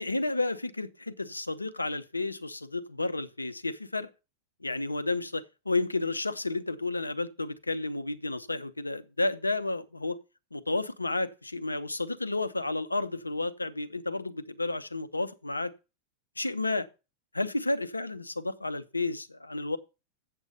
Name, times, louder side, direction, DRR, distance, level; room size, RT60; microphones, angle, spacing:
voice 1, 0.0-4.1 4.6-10.2 10.5-15.7 16.4-16.9 17.3-19.8, left 2 dB, 80° left, 0.6 m, -31 dB
8.0 x 7.6 x 5.4 m
figure-of-eight pair, 90°, 0 cm